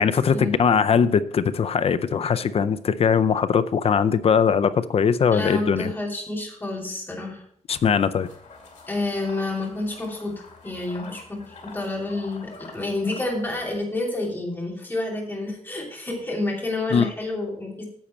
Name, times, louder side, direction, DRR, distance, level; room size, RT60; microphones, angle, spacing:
voice 1, 0.0-5.9 7.7-8.3 16.9-17.1, left 6 dB, 55° left, 14 dB, 0.5 m, -20 dB
voice 2, 5.3-7.4 8.9-17.8, left 2 dB, 15° left, -2 dB, 2.9 m, -29 dB
sound 1, 7.8-13.8, left 3 dB, 70° left, 2.5 m, -46 dB
10.0 x 7.2 x 4.3 m, 0.64 s
wide cardioid pair, 145°, 12 cm